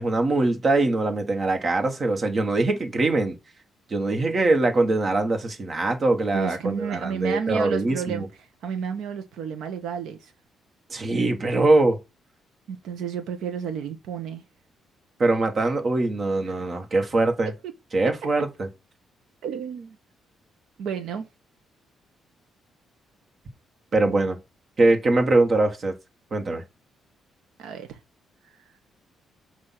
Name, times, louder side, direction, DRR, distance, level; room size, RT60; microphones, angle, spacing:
voice 1, 0.0-3.4 3.9-8.3 10.9-12.0 15.2-17.5 17.9-18.7 23.9-24.4 24.8-25.9 26.3-26.6, right 2 dB, 45° right, 1.5 m, -22 dB
voice 2, 6.3-10.3 12.7-14.4 17.6-17.7 19.4-20.0 20.8-21.2 27.6-28.0, right 7 dB, 80° right, 0.9 m, -31 dB
7.7 x 2.7 x 5.9 m
cardioid pair, 90°, 0 cm